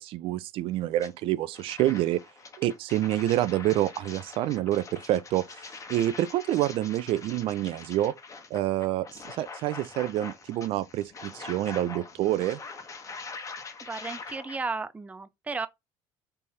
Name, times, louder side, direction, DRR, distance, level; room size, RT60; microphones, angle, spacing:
voice 1, 0.0-2.2 2.6-5.6 5.9-8.1 8.5-12.6, right 14 dB, 70° right, 0.5 m, -27 dB
sound 1, 1.0-1.1 1.5-14.6, left 4 dB, 35° left, 1.1 m, -43 dB
voice 2, 13.8-15.7, right 4 dB, 15° right, 0.5 m, -34 dB
3.5 x 3.3 x 4.2 m
supercardioid pair, 95°, 10 cm